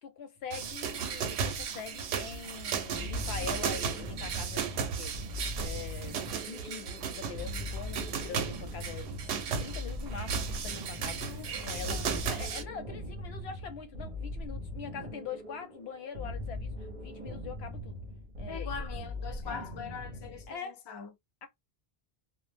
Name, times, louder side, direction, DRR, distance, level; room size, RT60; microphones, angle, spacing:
voice 1, 0.0-5.1 5.6-18.0 18.4-18.7 19.4-19.6 20.5-20.8 21.4-21.5, left 6 dB, 80° left, 0.9 m, -43 dB
sound 1, 0.5-12.6, right 6 dB, 90° right, 0.8 m, -35 dB
sound 2, 2.9-20.5, left 1 dB, 50° right, 0.8 m, -40 dB
voice 2, 11.1-11.5 11.8-12.2 18.5-21.1, left 6 dB, 40° left, 0.4 m, -42 dB
2.1 x 2.0 x 3.2 m
omnidirectional pair, 1.1 m